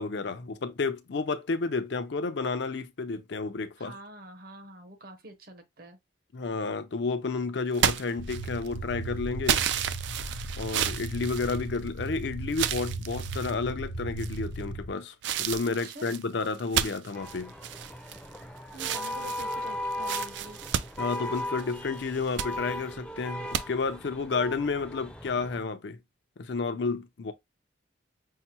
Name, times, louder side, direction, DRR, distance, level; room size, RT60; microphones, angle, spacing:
voice 1, 0.0-3.9 6.3-9.6 10.6-17.5 21.0-26.0 26.4-27.3, left 4 dB, 60° left, 0.5 m, -31 dB
voice 2, 3.8-6.0 15.8-16.1 18.7-20.6, right 1 dB, 50° right, 0.8 m, -46 dB
sound 1, 7.7-8.8 9.5-12.1 12.5-13.5 14.2-14.6 15.2-18.4 18.7-21.7 22.1-22.5 23.5-23.6, right 9 dB, 65° right, 0.3 m, -31 dB
sound 2, 8.2-14.9, right 2 dB, 85° left, 0.9 m, -37 dB
sound 3, 17.1-25.6, left 1 dB, 5° left, 0.5 m, -37 dB
5.6 x 2.1 x 2.9 m
head